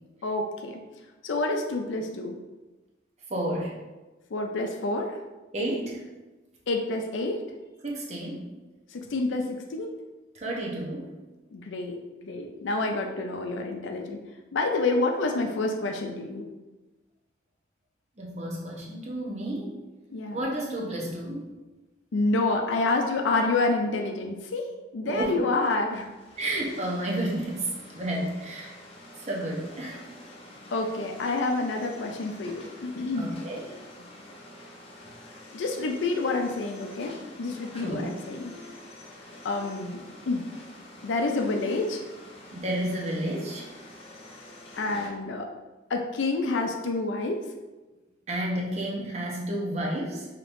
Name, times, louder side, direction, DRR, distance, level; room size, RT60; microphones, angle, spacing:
voice 1, 0.2-0.8 1.2-2.4 4.3-5.2 6.7-7.4 8.9-9.9 11.5-14.2 14.5-16.5 20.1-20.4 22.1-24.6 24.9-26.1 30.7-33.3 35.5-37.1 37.4-38.5 39.4-40.5 41.0-42.0 44.7-45.5 45.9-47.4, left 3 dB, 85° left, 3 dB, 0.4 m, -28 dB
voice 2, 3.3-3.8 5.5-6.0 7.8-8.5 10.3-11.2 18.2-19.8 20.3-21.4 25.1-25.4 26.4-28.7 29.2-30.1 33.1-33.7 37.8-38.1 42.5-43.7 48.3-50.3, right 1 dB, 35° right, -3 dB, 0.8 m, -31 dB
sound 1, 25.9-45.1, left 1 dB, 30° left, 0.6 m, -47 dB
5.0 x 2.9 x 2.5 m, 1.1 s
head